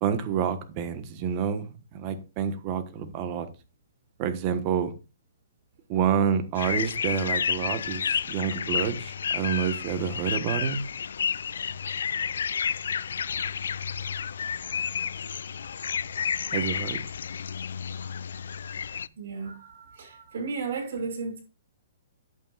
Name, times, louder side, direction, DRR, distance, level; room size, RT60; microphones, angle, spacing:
voice 1, 0.0-3.5 4.2-4.9 5.9-10.8 16.5-17.0, right 7 dB, 30° right, 1.3 m, -28 dB
sound 1, 6.6-19.1, left 7 dB, 80° left, 0.3 m, -31 dB
voice 2, 19.2-21.4, right 4 dB, 60° right, 5.8 m, -34 dB
10.5 x 8.9 x 2.4 m
hypercardioid pair, 155°, 0 cm